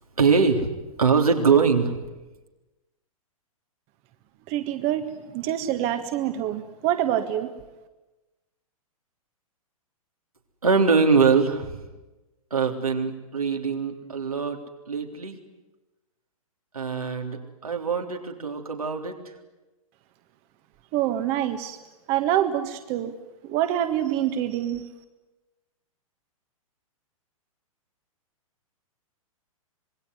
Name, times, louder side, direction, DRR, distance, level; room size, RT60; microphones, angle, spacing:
voice 1, 0.2-0.7 1.0-2.0 10.6-11.8 12.5-14.6 14.9-15.4 16.7-19.2, right 5 dB, 85° right, 2 dB, 3.7 m, -22 dB
voice 2, 4.5-7.5 20.9-21.8 22.1-23.1 23.4-24.8, right 11 dB, 35° right, 8 dB, 1.6 m, -26 dB
26.5 x 20.5 x 9.7 m, 1.1 s
figure-of-eight pair, 110°, 18 cm